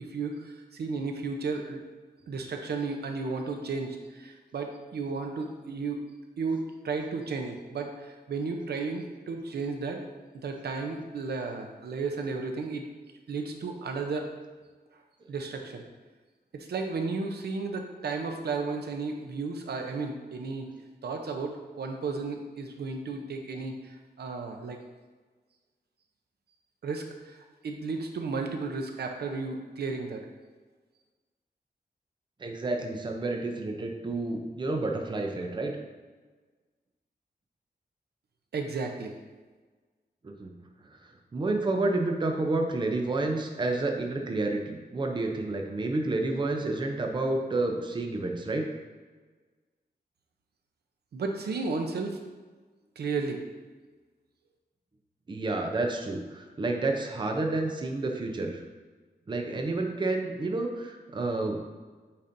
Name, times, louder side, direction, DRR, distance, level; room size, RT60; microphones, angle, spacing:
voice 1, 0.0-1.8 2.3-6.0 6.4-10.1 10.4-12.9 13.3-14.3 15.3-15.8 16.5-20.7 21.0-24.8 26.8-30.3 38.5-39.2 51.1-52.2 53.0-53.4, right 4 dB, 75° right, 4 dB, 0.6 m, -33 dB
voice 2, 32.4-35.8 40.2-40.5 41.3-48.6 55.3-58.6 59.3-61.7, right 2 dB, 30° right, 3 dB, 0.6 m, -30 dB
8.5 x 4.2 x 2.6 m, 1.4 s
wide cardioid pair, 155°, 17 cm